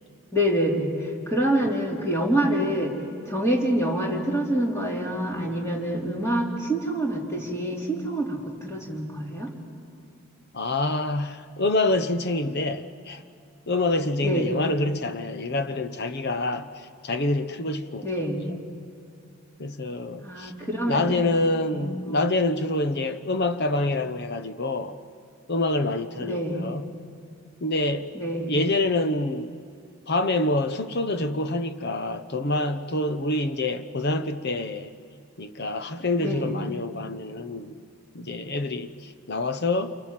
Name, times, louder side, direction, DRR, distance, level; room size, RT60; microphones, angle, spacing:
voice 1, 0.3-0.9 1.3-2.9 3.2-9.5 14.2-14.5 18.0-18.4 20.2-22.2 26.2-26.7 28.1-28.5 36.2-36.6, right 1 dB, 10° left, 3.2 m, -26 dB
voice 2, 10.5-13.2 13.7-18.6 19.6-20.5 20.8-25.0 25.5-26.8 27.6-28.1 28.5-29.6 30.1-34.9 35.4-37.8 38.1-40.0, left 2 dB, 50° left, 1.0 m, -26 dB
28.5 x 23.5 x 7.6 m
head